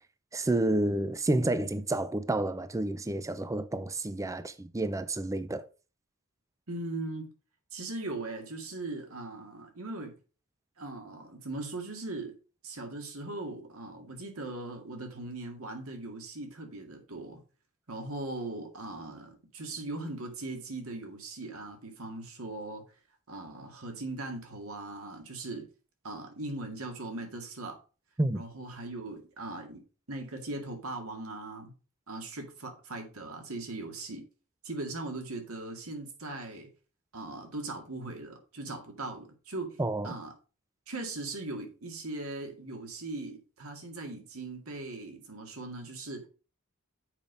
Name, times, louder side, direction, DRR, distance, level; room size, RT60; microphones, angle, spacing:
voice 1, 0.3-5.6 28.2-28.4 39.8-40.1, right 1 dB, 15° right, 0.5 m, -30 dB
voice 2, 6.7-7.3 7.7-10.2 10.8-12.4 12.6-17.4 17.9-22.8 23.3-25.7 26.0-27.8 28.3-31.7 32.1-34.2 34.6-36.7 37.1-40.3 40.9-46.3, right 2 dB, 70° right, 2.1 m, -39 dB
7.3 x 5.4 x 5.1 m
head